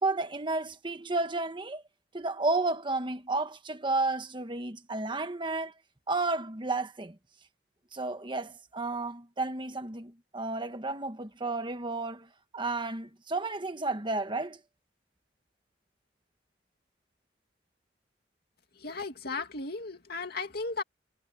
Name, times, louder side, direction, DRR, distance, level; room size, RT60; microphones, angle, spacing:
voice 1, 0.0-1.8 2.1-5.7 6.1-7.2 7.9-12.3 12.5-14.6, right 3 dB, 25° right, 1.4 m, -32 dB
voice 2, 18.8-20.8, left 3 dB, 55° left, 2.5 m, -35 dB
head